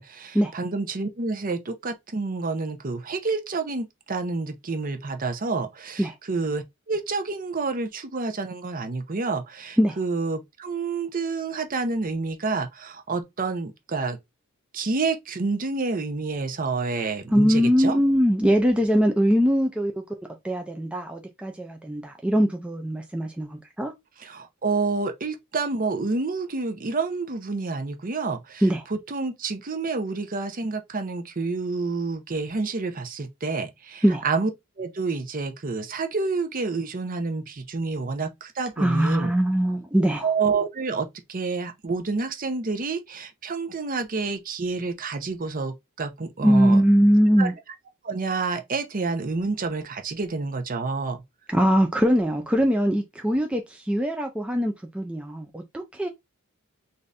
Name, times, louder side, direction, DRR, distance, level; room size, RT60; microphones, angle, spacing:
voice 1, 0.0-14.2 14.7-18.0 24.2-28.6 28.9-34.5 34.8-39.3 40.0-46.8 47.4-47.5 48.0-51.2, right 4 dB, 40° right, 0.7 m, -29 dB
voice 2, 17.3-20.0 20.4-23.9 28.6-28.9 34.0-34.2 38.8-40.3 46.4-47.5 51.5-56.1, equal, 5° right, 0.4 m, -22 dB
3.9 x 2.6 x 3.3 m
head